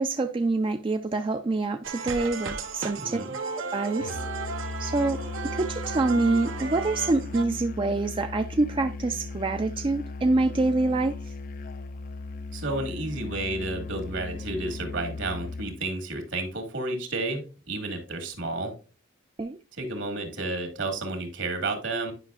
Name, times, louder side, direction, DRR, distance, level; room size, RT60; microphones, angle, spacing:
voice 1, 0.0-3.2 3.6-4.2 4.8-5.2 5.5-11.3 19.4-19.6, right 3 dB, 25° right, 0.3 m, -26 dB
sound 1, 1.8-7.4, right 4 dB, 85° right, 1.0 m, -35 dB
voice 2, 3.0-3.4 12.5-18.7 19.8-22.1, right 2 dB, 70° right, 2.0 m, -31 dB
Musical instrument, 4.0-15.9, left 3 dB, 45° left, 0.4 m, -37 dB
9.8 x 5.6 x 2.4 m
head